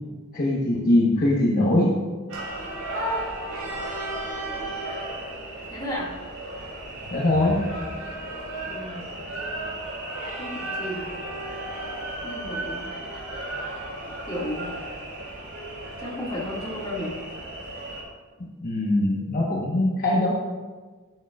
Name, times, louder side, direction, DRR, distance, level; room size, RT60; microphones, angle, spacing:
voice 1, 0.3-1.9 7.1-7.6 18.6-20.3, left 1 dB, 40° left, -4 dB, 1.1 m, -21 dB
sound 1, 2.3-18.0, right 1 dB, 70° right, 2.8 m, -34 dB
voice 2, 5.7-6.1 8.5-9.8 10.4-11.1 12.2-12.9 14.3-14.7 16.0-17.1, left 1 dB, 20° left, -6 dB, 1.9 m, -34 dB
sound 2, 6.8-8.7, equal, 35° right, 1.1 m, -41 dB
10.5 x 8.8 x 2.4 m, 1.4 s
head